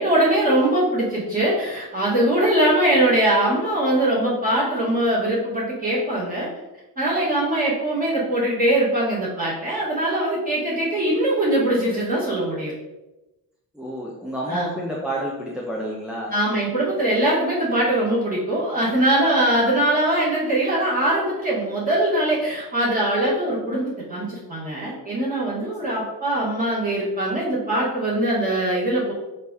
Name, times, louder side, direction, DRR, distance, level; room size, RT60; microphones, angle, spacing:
voice 1, 0.0-6.5 7.0-12.7 14.5-14.8 16.3-29.1, right 1 dB, 25° right, -8 dB, 2.1 m, -22 dB
voice 2, 13.7-16.3, equal, ahead, -4 dB, 0.8 m, -29 dB
6.5 x 3.3 x 5.5 m, 1.0 s
wide cardioid pair, 180°, 36 cm